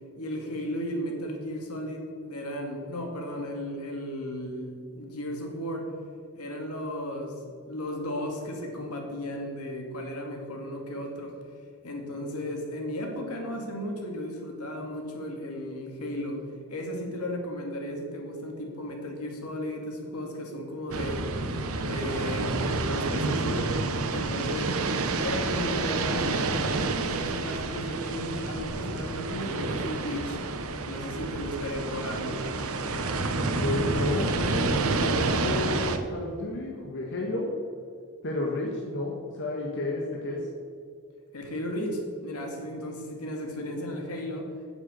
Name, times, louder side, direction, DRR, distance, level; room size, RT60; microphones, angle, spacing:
voice 1, 0.2-5.9 6.3-7.4 7.7-11.4 11.8-21.3 21.8-23.8 24.1-24.8 25.1-30.4 30.8-32.4 41.3-44.5, equal, 75° left, 2 dB, 2.2 m, -35 dB
sound 1, 20.9-36.0, right 3 dB, 70° right, 1.0 m, -29 dB
voice 2, 33.4-37.5 38.2-40.5, left 2 dB, 55° left, -1 dB, 1.5 m, -31 dB
9.4 x 7.3 x 8.1 m, 2.2 s
head